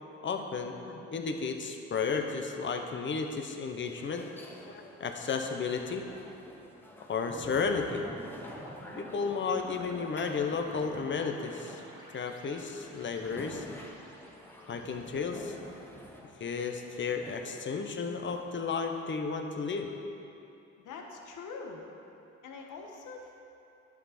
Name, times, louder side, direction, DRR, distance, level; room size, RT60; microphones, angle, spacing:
voice 1, 0.2-4.3 4.7-6.0 7.1-8.0 9.0-11.8 12.1-13.6 14.7-15.6 16.4-19.9, left 5 dB, 40° left, 5 dB, 0.9 m, -33 dB
sound 1, 2.7-19.4, left 1 dB, 5° left, 1.0 m, -51 dB
sound 2, 7.3-15.6, equal, 15° right, 1.8 m, -49 dB
voice 2, 20.8-21.8 22.4-23.4, left 4 dB, 80° left, 1 dB, 1.3 m, -44 dB
11.0 x 7.0 x 4.3 m, 2.7 s
cardioid pair, 90°, 30 cm